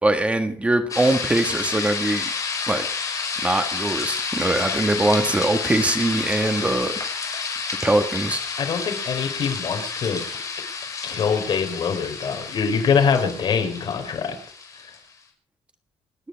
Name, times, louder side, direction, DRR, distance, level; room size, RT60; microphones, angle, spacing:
voice 1, 0.0-2.3 2.7-2.8 3.4-6.9 7.8-8.4, right 2 dB, 15° right, 6 dB, 1.6 m, -22 dB
sound 1, 0.9-15.0, left 5 dB, 35° left, 5.4 m, -30 dB
voice 2, 8.6-10.2 11.0-14.3, left 6 dB, 50° left, 5 dB, 4.5 m, -24 dB
29.0 x 9.8 x 4.8 m, 0.41 s
cardioid pair, 155°, 10 cm